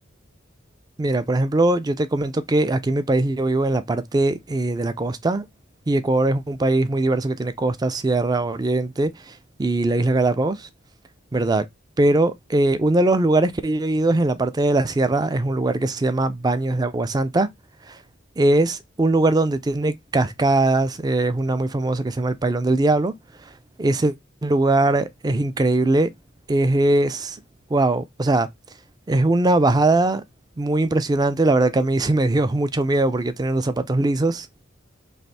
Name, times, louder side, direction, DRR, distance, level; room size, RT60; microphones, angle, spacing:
voice 1, 1.0-5.5 5.9-10.7 11.3-11.6 12.0-17.5 17.9-18.0 18.4-23.1 23.8-24.1 24.4-26.1 26.5-27.4 27.7-28.5 29.1-30.2 30.6-34.5, right 2 dB, 20° right, 0.4 m, -21 dB
3.2 x 2.6 x 4.0 m
head